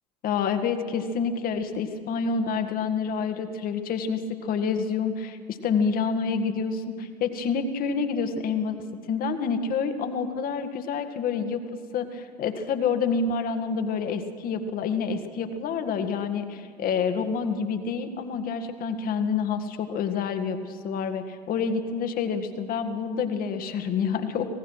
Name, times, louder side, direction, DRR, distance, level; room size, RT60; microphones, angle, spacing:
voice 1, 0.2-8.8 9.1-11.6 11.9-24.5, left 5 dB, 45° left, 8 dB, 1.8 m, -28 dB
25.5 x 18.0 x 6.3 m, 2.1 s
figure-of-eight pair, 70°, 21 cm